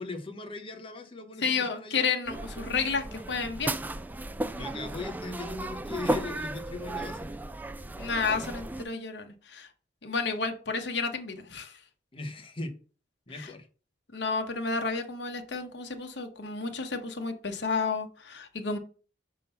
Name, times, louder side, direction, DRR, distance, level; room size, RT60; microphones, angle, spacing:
voice 1, 0.0-2.1 4.5-7.3 12.1-12.8 13.3-13.7, left 2 dB, 30° left, 6 dB, 0.9 m, -39 dB
voice 2, 1.4-3.8 8.0-9.7 10.0-11.8 13.4-13.5 14.1-18.8, left 4 dB, 70° left, 4 dB, 1.0 m, -31 dB
sound 1, 2.3-8.9, right 1 dB, 10° right, 0.3 m, -35 dB
5.6 x 3.7 x 5.4 m, 0.38 s
head